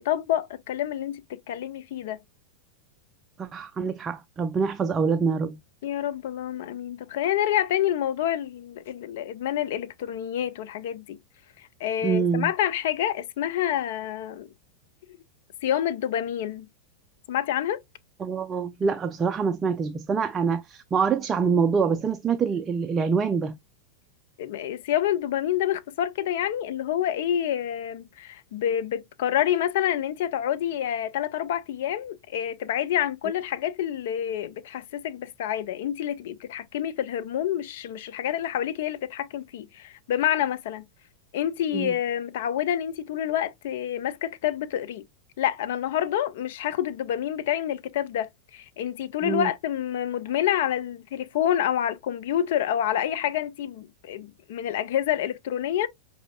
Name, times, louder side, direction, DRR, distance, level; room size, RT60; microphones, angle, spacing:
voice 1, 0.0-2.2 5.8-11.2 11.6-14.5 15.6-16.7 17.3-17.8 24.4-40.8 41.3-45.0 45.4-55.9, left 11 dB, 55° left, 0.4 m, -28 dB
voice 2, 3.4-5.6 12.0-12.5 18.2-23.6 41.7-41.9 49.2-49.5, right 5 dB, 20° right, 0.3 m, -25 dB
5.0 x 2.6 x 2.6 m
figure-of-eight pair, 90°, 0 cm